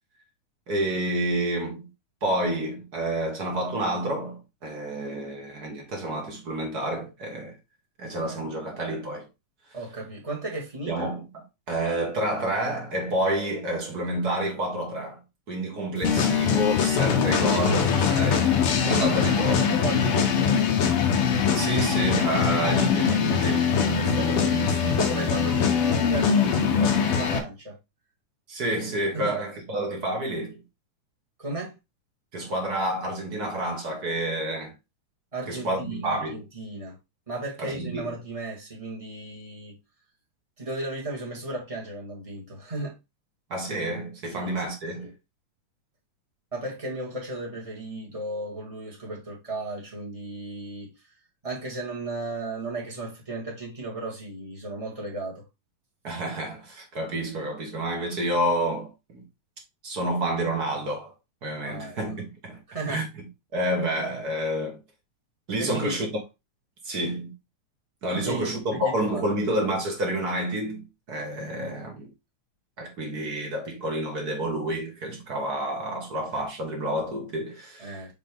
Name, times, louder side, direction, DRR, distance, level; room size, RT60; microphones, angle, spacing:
voice 1, 0.7-1.9 2.2-7.6 8.0-9.3 10.9-15.2 15.5-18.5 18.8-19.6 21.5-24.4 28.5-30.6 32.3-34.7 35.5-36.4 37.6-38.1 43.5-45.1 56.0-59.2 59.8-61.1 61.4-62.6 62.9-64.8 65.5-66.2 66.8-67.3 68.0-72.1 72.8-78.0, right 1 dB, 40° right, 1.6 m, -29 dB
voice 2, 9.7-11.1 19.0-21.1 24.0-27.8 29.1-29.4 31.4-31.7 35.3-37.0 37.3-39.8 40.6-43.0 44.3-44.7 45.0-45.1 46.5-50.9 51.4-55.4 61.6-62.0 62.7-63.0 65.6-66.0 68.1-69.2 77.8-78.1, right 2 dB, 15° right, 1.5 m, -35 dB
sound 1, 16.0-27.4, left 6 dB, 65° left, 1.4 m, -22 dB
6.5 x 3.9 x 3.6 m
omnidirectional pair, 3.7 m